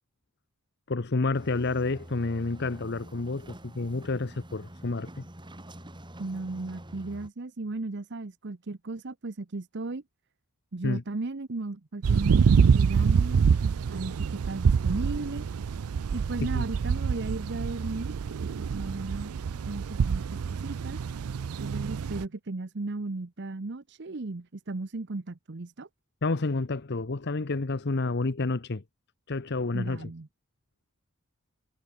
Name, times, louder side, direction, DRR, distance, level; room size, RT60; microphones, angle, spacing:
voice 1, 0.9-5.3 10.8-11.0 16.5-16.6 26.2-28.8 29.3-30.1, left 3 dB, 50° left, 0.8 m, -29 dB
sound 1, 1.3-7.3, right 1 dB, 20° right, 2.8 m, -47 dB
voice 2, 6.2-10.0 10.7-15.4 16.1-19.3 19.7-21.0 21.6-25.9 29.7-30.3, right 3 dB, 50° right, 0.8 m, -36 dB
sound 2, 12.0-22.2, right 6 dB, 80° right, 0.4 m, -26 dB
head